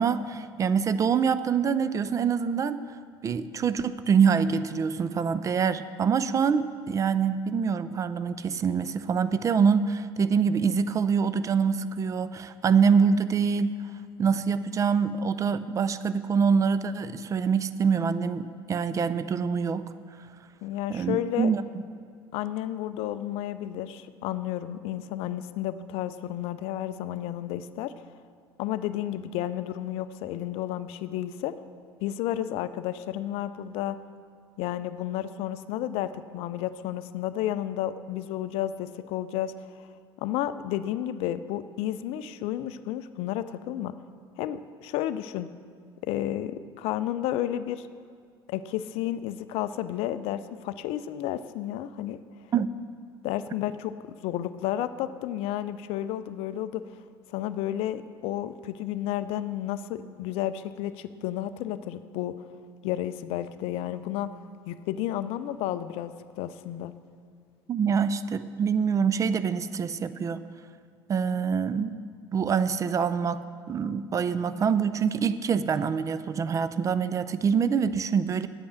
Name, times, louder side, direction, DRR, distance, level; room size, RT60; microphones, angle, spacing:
voice 1, 0.0-2.8 3.2-13.7 14.2-19.9 20.9-21.6 52.5-52.7 67.7-70.4 71.1-72.0 72.3-73.4 73.7-78.5, right 6 dB, 25° right, 13 dB, 0.4 m, -25 dB
voice 2, 20.6-21.5 22.3-27.9 28.6-31.5 32.0-34.0 34.6-39.9 40.2-43.9 44.4-45.5 46.0-47.9 48.5-52.2 53.2-53.9 54.2-56.9 57.3-62.4 62.8-66.9, left 12 dB, 50° left, 13 dB, 0.4 m, -32 dB
8.8 x 8.4 x 6.0 m, 2.1 s
figure-of-eight pair, 65°, 13 cm